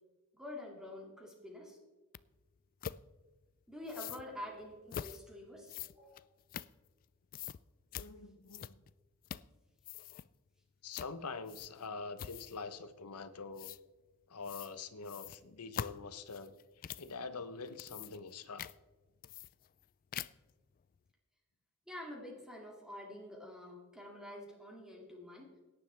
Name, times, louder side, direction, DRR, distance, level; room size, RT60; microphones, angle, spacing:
voice 1, 0.3-1.8 3.7-6.3 21.9-25.5, left 1 dB, 5° right, -1 dB, 2.2 m, -47 dB
sound 1, 2.1-2.2 2.8-3.0 3.9-4.2 4.9-5.2 5.7-7.0 7.3-7.6 7.9-8.1 8.5-8.9 9.2-9.5 9.8-10.3 10.9-11.1 11.5-11.8 12.2-12.6 13.6-13.8 14.4-14.7 15.0-17.1 17.6-18.3 18.6-18.7 19.2-19.8 20.1-20.5, left 9 dB, 40° left, 0.3 m, -44 dB
voice 2, 8.0-8.8 10.8-13.7 14.3-18.7, left 4 dB, 85° left, 12 dB, 0.9 m, -45 dB
17.0 x 10.0 x 3.4 m, 1.2 s
head